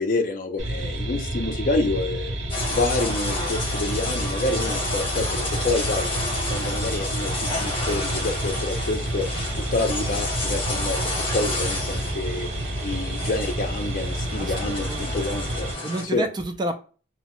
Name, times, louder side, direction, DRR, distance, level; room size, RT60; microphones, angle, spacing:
voice 1, 0.0-2.3 2.7-6.1 6.5-9.3 9.5-12.5 12.8-15.7 16.1-16.2, left 2 dB, 45° left, 5 dB, 0.4 m, -28 dB
sound 1, 0.6-15.7, right 1 dB, 75° right, 0.7 m, -29 dB
sound 2, 2.5-16.0, left 2 dB, 25° left, 0.9 m, -30 dB
voice 2, 14.4-15.1 15.8-16.7, right 1 dB, 20° right, 6 dB, 0.3 m, -30 dB
2.7 x 2.1 x 2.9 m, 0.36 s
head